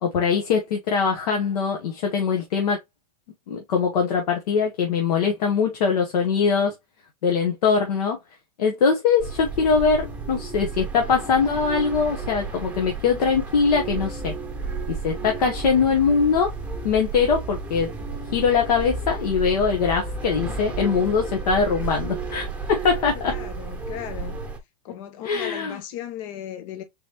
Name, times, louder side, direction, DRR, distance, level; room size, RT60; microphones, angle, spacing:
voice 1, 0.0-2.8 3.5-6.7 7.2-8.2 8.6-14.3 14.9-16.5 16.8-17.9 18.3-23.3 25.2-25.8, left 5 dB, 85° left, 1.1 m, -22 dB
sound 1, 9.2-24.6, right 4 dB, 5° right, 1.1 m, -32 dB
voice 2, 23.1-24.4 24.8-26.8, left 10 dB, 60° left, 0.9 m, -36 dB
4.0 x 2.9 x 3.4 m
supercardioid pair, 125°, 19 cm